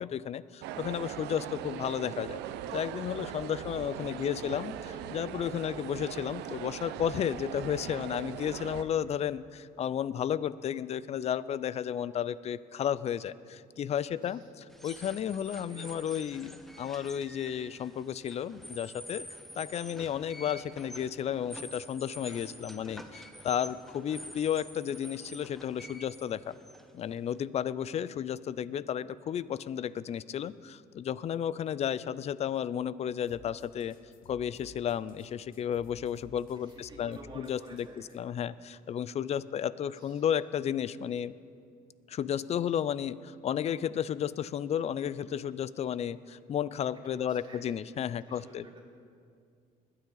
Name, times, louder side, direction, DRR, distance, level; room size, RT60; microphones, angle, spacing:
voice 1, 0.0-2.4 2.7-19.3 19.6-26.5 26.9-34.0 34.3-37.9 38.1-41.3 42.1-48.6, left 9 dB, 40° left, 18 dB, 0.4 m, -33 dB
sound 1, 0.6-8.8, right 11 dB, 85° right, 0.6 m, -40 dB
voice 2, 3.2-4.5 8.7-8.9 14.1-14.5 15.7-16.1 22.4-23.5 23.8-23.9 36.5-38.2 39.4-39.6 39.9-40.2 47.2-47.8 48.2-48.8, right 2 dB, 25° right, -4 dB, 3.2 m, -53 dB
sound 2, 14.7-27.4, equal, ahead, 0.9 m, -48 dB
sound 3, 33.3-38.2, left 5 dB, 55° left, 0.9 m, -56 dB
20.5 x 9.4 x 3.9 m, 2.3 s
cardioid pair, 110°, 17 cm